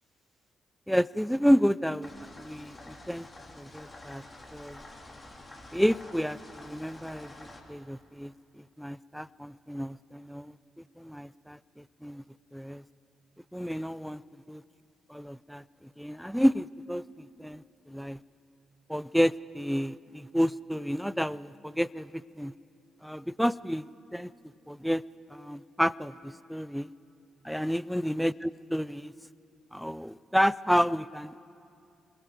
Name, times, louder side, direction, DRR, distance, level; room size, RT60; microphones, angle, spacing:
voice 1, 0.9-2.1 2.4-3.3 3.6-4.2 4.5-4.8 5.7-10.6 11.0-12.2 12.5-12.8 13.5-14.2 14.5-14.6 15.1-15.6 16.0-18.2 18.9-22.5 23.0-24.3 24.7-25.0 25.3-26.9 27.4-29.1 29.7-31.4, equal, ahead, 19 dB, 0.5 m, -30 dB
sound 1, 2.0-7.6, left 2 dB, 25° left, 3.1 m, -48 dB
26.0 x 20.5 x 5.2 m, 2.6 s
hypercardioid pair, 40°, 0 cm